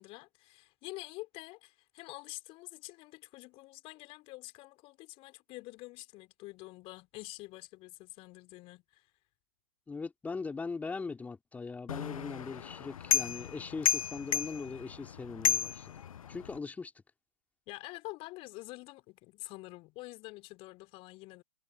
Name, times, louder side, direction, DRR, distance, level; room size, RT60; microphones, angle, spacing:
voice 1, 0.0-9.0 17.7-21.4, left 21 dB, 25° left, 4.3 m, -47 dB
voice 2, 9.9-16.0 16.3-16.9, left 4 dB, 5° left, 2.8 m, -40 dB
sound 1, 11.9-16.6, left 9 dB, 55° left, 0.8 m, -33 dB
figure-of-eight pair, 120°, 21 cm